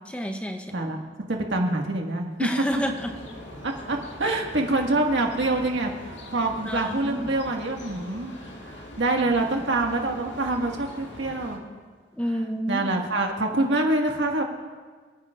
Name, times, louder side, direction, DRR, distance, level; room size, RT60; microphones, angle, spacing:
voice 1, 0.1-0.7 2.4-3.2 6.7-7.3 12.2-12.9, equal, 5° left, 4 dB, 0.6 m, -29 dB
voice 2, 0.7-2.5 3.6-8.3 8.6-11.6 12.7-14.4, right 2 dB, 90° right, 1 dB, 1.6 m, -26 dB
sound 1, 2.7-11.6, left 1 dB, 90° left, 1.9 m, -42 dB
28.5 x 9.7 x 2.4 m, 1.5 s
head